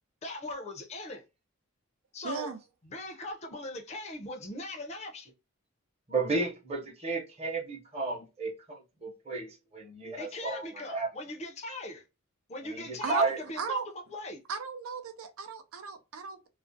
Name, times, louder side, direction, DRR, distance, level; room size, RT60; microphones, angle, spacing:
voice 1, 0.2-1.2 2.1-2.5 2.8-5.3 10.2-12.0 12.5-14.4, left 2 dB, 30° left, 0.5 m, -40 dB
voice 2, 2.2-2.6 13.0-13.3 13.6-13.9 14.5-16.5, right 5 dB, 80° right, 0.5 m, -35 dB
voice 3, 6.1-11.1 12.6-13.4, right 3 dB, 30° right, 0.8 m, -33 dB
2.4 x 2.0 x 2.5 m
head